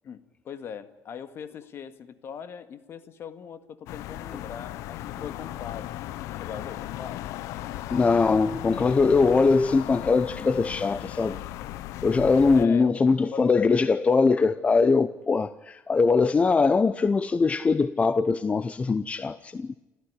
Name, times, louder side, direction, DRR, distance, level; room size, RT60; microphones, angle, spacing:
voice 1, 0.0-7.3 7.6-7.8 12.5-13.0 13.3-13.8, left 7 dB, 50° left, 2.0 m, -41 dB
sound 1, 3.9-12.7, left 15 dB, 80° left, 0.9 m, -37 dB
voice 2, 7.9-11.4 12.0-19.8, left 4 dB, 25° left, 0.8 m, -22 dB
29.5 x 15.0 x 10.0 m
cardioid pair, 110°, 5 cm